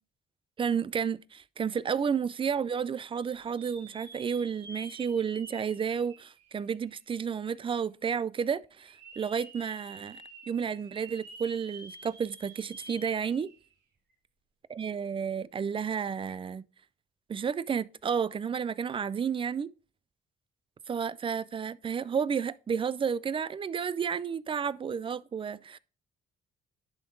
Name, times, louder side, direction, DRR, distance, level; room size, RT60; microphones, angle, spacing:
voice 1, 0.6-13.5 14.7-16.6 17.3-19.7 20.9-25.8, right 7 dB, 25° right, 0.3 m, -31 dB
sound 1, 3.1-7.1 7.6-7.7 8.8-13.7 14.1-14.2 16.2-16.3, right 3 dB, 60° right, 2.7 m, -49 dB
10.5 x 3.7 x 3.7 m
cardioid pair, 90°, 20 cm